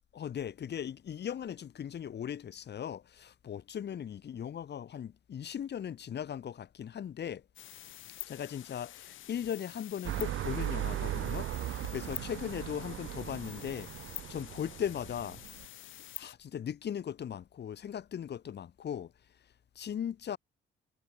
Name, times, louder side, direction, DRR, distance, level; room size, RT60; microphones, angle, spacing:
voice 1, 0.1-7.4 8.2-15.4 16.2-19.1 19.7-20.4, left 9 dB, 60° left, 3.0 m, -38 dB
sound 1, 7.6-16.3, left 14 dB, 80° left, 2.9 m, -47 dB
sound 2, 10.0-15.7, right 13 dB, 80° right, 1.7 m, -38 dB
cardioid pair, 90°, 20 cm